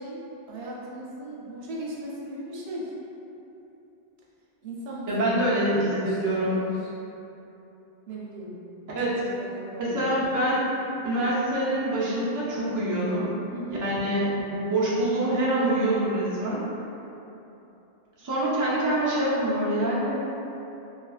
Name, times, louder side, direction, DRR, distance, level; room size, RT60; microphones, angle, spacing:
voice 1, 0.0-2.9 4.6-6.9 8.1-8.6 8.9-10.1 13.5-13.8, right 1 dB, 85° right, -5 dB, 0.8 m, -38 dB
voice 2, 5.1-6.6 8.9-9.2 9.8-10.6 11.0-13.3 13.7-16.6 18.2-20.2, right 1 dB, 30° right, -8 dB, 0.4 m, -25 dB
2.7 x 2.5 x 2.3 m, 3.0 s
omnidirectional pair, 1.0 m